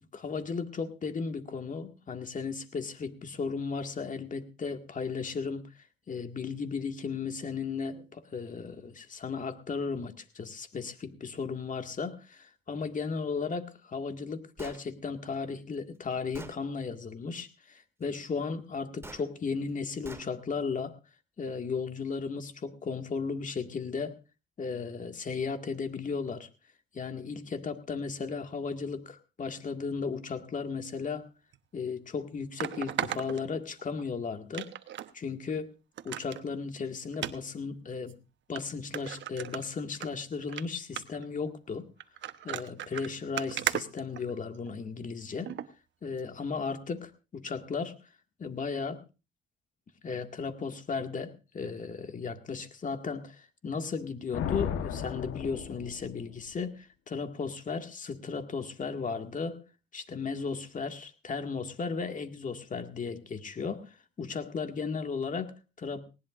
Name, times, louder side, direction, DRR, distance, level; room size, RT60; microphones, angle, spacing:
voice 1, 0.0-5.7 6.1-21.0 21.4-24.2 24.6-26.5 26.9-31.3 31.7-34.7 35.1-35.7 36.0-38.2 38.5-41.9 42.4-45.5 46.0-48.0 48.4-49.0 50.0-59.6 59.9-66.0, left 5 dB, 40° left, 6 dB, 2.0 m, -35 dB
Gunshot gunfire, 14.6-14.8 15.7-15.8 16.3-16.6 19.0-19.2 20.0-20.3, right 2 dB, 15° right, 2.2 m, -45 dB
sound 1, 31.5-31.6 32.6-34.0 34.5-35.1 35.5-35.6 36.0-36.4 37.1-37.3 38.1-38.2 38.6-38.7 38.9-40.1 40.4-40.6 41.0-41.3 42.0-44.7 45.5-45.7 46.2-46.3, right 11 dB, 70° right, 1.0 m, -36 dB
Thunder, 54.3-56.5, left 8 dB, 85° left, 1.2 m, -35 dB
19.5 x 18.5 x 2.5 m, 0.30 s
cardioid pair, 90°, 20 cm